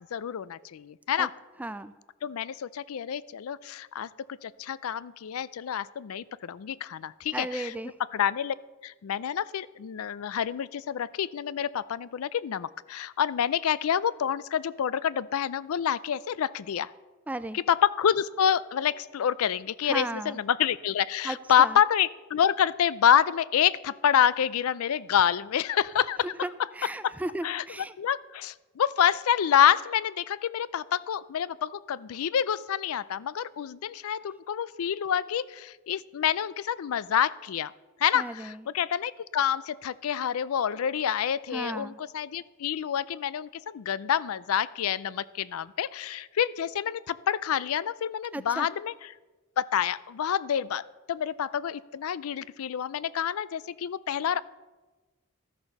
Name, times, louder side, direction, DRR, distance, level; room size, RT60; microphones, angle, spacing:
voice 1, 0.1-1.3 2.2-4.1 4.4-7.7 8.1-8.5 8.8-16.9 17.5-26.3 27.4-27.6 28.0-37.7 38.0-48.9 49.6-50.8 51.1-54.4, left 9 dB, 85° left, 19 dB, 0.4 m, -27 dB
voice 2, 1.6-1.9 7.3-7.9 17.3-17.6 19.8-20.4 21.2-21.8 26.2-28.0 38.1-38.6 41.5-42.0 48.3-48.7, right 1 dB, 5° right, 14 dB, 0.3 m, -35 dB
13.5 x 6.6 x 5.9 m, 1.2 s
head